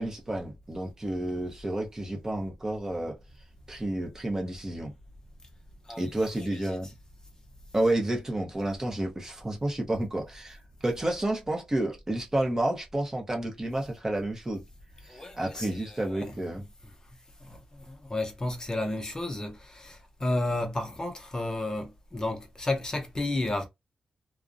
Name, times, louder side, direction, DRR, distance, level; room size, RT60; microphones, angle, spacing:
voice 1, 0.0-3.2 3.7-4.9 6.0-6.9 7.7-14.6 15.0-16.6, right 1 dB, 20° right, 0.7 m, -30 dB
voice 2, 15.1-16.3 17.4-23.7, left 2 dB, 25° left, 0.6 m, -32 dB
2.5 x 2.1 x 2.4 m
wide cardioid pair, 120°, 3 cm